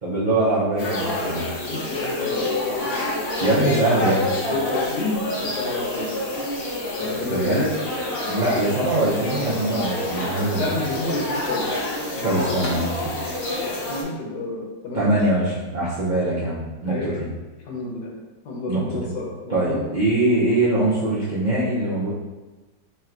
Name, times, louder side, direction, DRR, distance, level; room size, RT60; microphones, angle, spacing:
voice 1, 0.0-1.5 3.4-4.3 7.3-7.7 8.3-10.6 12.2-13.1 14.9-17.2 18.7-19.1 19.5-22.1, right 2 dB, 65° right, -9 dB, 0.4 m, -22 dB
sound 1, 0.8-14.0, left 1 dB, 50° left, 0.7 m, -27 dB
voice 2, 1.7-2.9 3.4-3.8 4.5-6.2 7.0-7.6 10.5-11.8 12.1-12.6 13.9-15.2 16.8-17.2 17.7-18.1 18.4-19.8, left 2 dB, 90° left, -3 dB, 1.5 m, -30 dB
4.4 x 3.4 x 2.5 m, 1.2 s
omnidirectional pair, 1.8 m